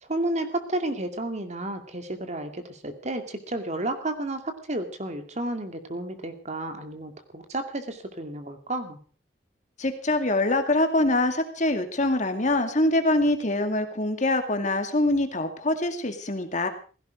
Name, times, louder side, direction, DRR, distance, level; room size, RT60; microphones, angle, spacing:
voice 1, 0.0-9.0, right 1 dB, 40° right, 7 dB, 2.4 m, -32 dB
voice 2, 9.8-16.7, left 2 dB, 45° left, 7 dB, 2.3 m, -24 dB
16.5 x 16.5 x 5.1 m, 0.38 s
head